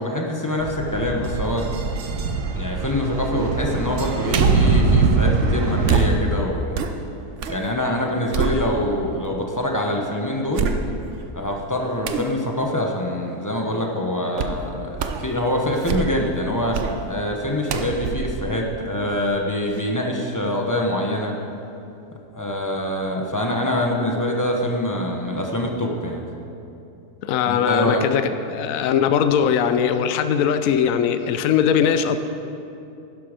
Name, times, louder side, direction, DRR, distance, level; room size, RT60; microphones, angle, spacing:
voice 1, 0.0-1.7 2.5-6.8 7.5-10.7 11.3-16.8 17.1-21.3 22.3-26.3 27.4-28.0, left 1 dB, 15° left, 0 dB, 0.9 m, -24 dB
sound 1, 0.6-6.1, right 4 dB, 75° right, 1.5 m, -22 dB
sound 2, 4.3-4.8 5.8-7.6 8.0-9.1 9.6-9.7 10.5-11.2 12.0-12.3 14.4-14.6 15.0-15.3 15.7-16.3 16.7-17.0 17.7-19.3 19.7-19.8, right 6 dB, 60° right, 0.9 m, -26 dB
voice 2, 27.2-28.2 28.5-32.2, left 8 dB, 70° left, 9 dB, 1.0 m, -20 dB
11.5 x 11.0 x 5.1 m, 2.8 s
omnidirectional pair, 1.7 m